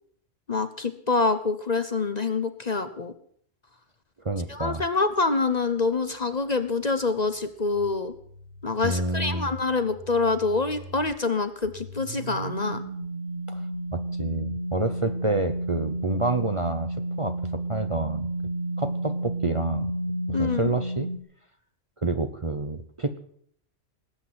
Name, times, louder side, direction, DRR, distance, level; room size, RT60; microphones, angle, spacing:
voice 1, 0.5-3.1 4.5-8.1 8.6-12.8 20.3-20.7, left 3 dB, 35° left, 11 dB, 0.9 m, -26 dB
voice 2, 4.2-4.8 8.8-9.5 13.5-13.6 13.9-18.3 18.8-19.9 20.3-21.1 22.0-23.2, right 2 dB, 30° right, 7 dB, 0.8 m, -28 dB
sound 1, 7.7-11.1 11.6-21.2, right 1 dB, 60° right, 1.7 m, -32 dB
19.5 x 8.6 x 7.7 m, 0.62 s
omnidirectional pair, 1.3 m